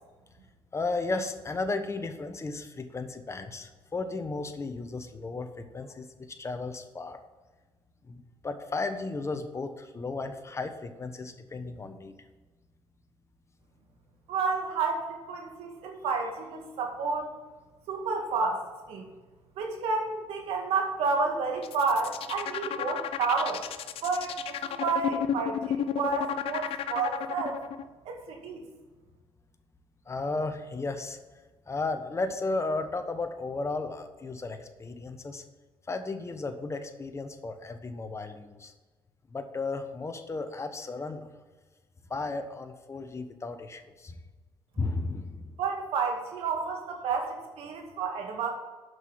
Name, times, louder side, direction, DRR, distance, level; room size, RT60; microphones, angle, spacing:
voice 1, 0.7-7.2 8.1-12.1 30.1-31.2 31.7-35.4 35.9-38.7 39.3-41.3 42.1-44.2 44.8-45.5, left 3 dB, 30° left, 7 dB, 1.2 m, -34 dB
voice 2, 14.3-17.3 17.9-18.6 18.9-19.1 19.6-23.6 24.0-27.6 28.1-28.6 45.6-48.5, right 4 dB, 90° right, 2 dB, 1.9 m, -30 dB
sound 1, 21.6-27.8, left 10 dB, 75° left, 0.6 m, -32 dB
8.0 x 6.1 x 7.6 m, 1.2 s
cardioid pair, 85°, 10 cm